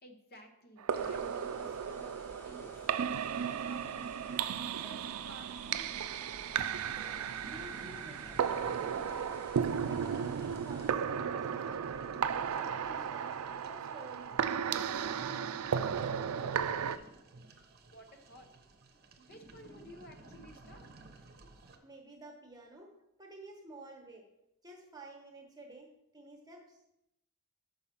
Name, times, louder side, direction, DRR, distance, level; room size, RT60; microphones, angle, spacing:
voice 1, 0.0-2.9 3.5-6.1 17.9-18.5 19.2-20.9, equal, 45° left, 4 dB, 0.9 m, -54 dB
sound 1, 0.8-17.0, right 7 dB, 85° right, 0.4 m, -35 dB
sound 2, 0.9-10.9, equal, 10° left, 1.1 m, -55 dB
sound 3, 6.5-21.8, right 2 dB, 50° right, 0.8 m, -54 dB
voice 2, 6.9-9.3 9.9-14.4 14.7-16.5 21.8-22.9 23.2-24.3 24.6-26.8, right 2 dB, 20° right, 1 dB, 1.2 m, -52 dB
5.6 x 5.5 x 5.9 m, 0.85 s
head